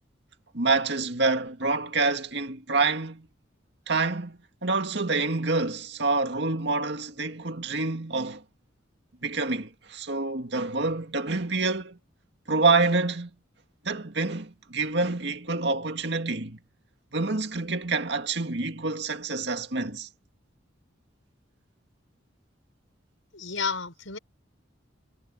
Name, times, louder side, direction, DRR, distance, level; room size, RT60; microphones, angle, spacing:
voice 1, 0.5-3.3 3.9-8.4 9.2-12.0 12.5-13.3 13.8-16.6 17.1-20.1, right 3 dB, 60° right, 2.2 m, -27 dB
voice 2, 23.3-24.2, left 5 dB, 85° left, 5.8 m, -31 dB
head